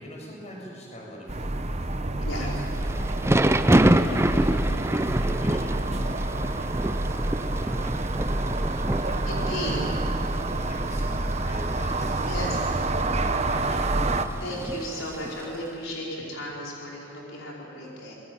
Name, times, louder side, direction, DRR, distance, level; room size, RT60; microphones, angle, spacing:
voice 1, 0.0-4.5 4.9-8.5 9.0-9.9 10.5-14.2, equal, 35° left, -2 dB, 7.0 m, -43 dB
sound 1, 1.3-14.3, right 2 dB, 35° right, 1.1 m, -28 dB
Thunder / Rain, 2.5-15.6, right 1 dB, 15° right, 0.6 m, -28 dB
voice 2, 9.3-9.8 12.3-12.6 14.4-18.1, equal, 80° left, -3 dB, 4.8 m, -34 dB
26.5 x 21.5 x 9.0 m, 2.6 s
head